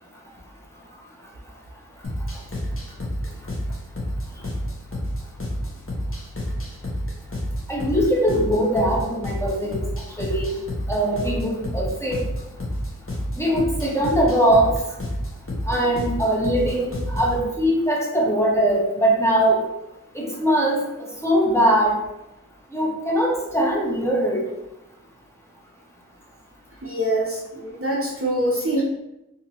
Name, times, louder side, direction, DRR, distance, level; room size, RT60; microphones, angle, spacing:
sound 1, 2.0-17.4, equal, 40° left, 0.8 m, -29 dB
voice 1, 7.7-9.8 10.2-10.5 10.9-12.2 13.4-14.7 15.7-19.6 20.1-20.8 21.2-21.9 22.7-24.4, right 1 dB, 10° left, -4 dB, 0.8 m, -21 dB
voice 2, 26.8-28.8, right 1 dB, 40° right, -2 dB, 0.6 m, -24 dB
2.8 x 2.6 x 2.8 m, 0.91 s
wide cardioid pair, 45°, 33 cm